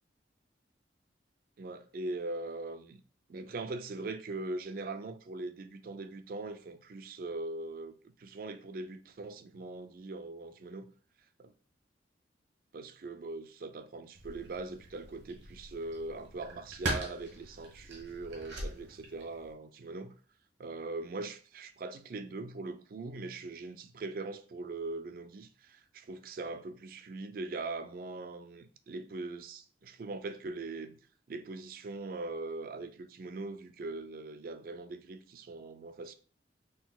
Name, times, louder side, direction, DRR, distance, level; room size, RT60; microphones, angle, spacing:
voice 1, 1.6-3.0 3.3-10.9 11.4-11.5 12.7-20.2 20.6-31.0 31.3-36.1, right 3 dB, 50° right, 0.3 m, -41 dB
sound 1, 14.1-19.5, right 1 dB, 80° right, 1.0 m, -41 dB
3.9 x 3.8 x 2.3 m
head